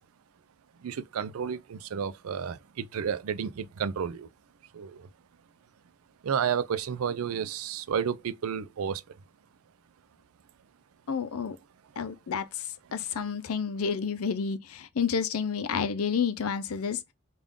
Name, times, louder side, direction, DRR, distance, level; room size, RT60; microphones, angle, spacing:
voice 1, 0.8-4.3 4.7-5.1 6.2-9.0, right 7 dB, 85° right, 0.4 m, -31 dB
voice 2, 11.1-11.6 12.0-17.0, left 6 dB, 90° left, 0.5 m, -30 dB
3.5 x 2.4 x 3.6 m
head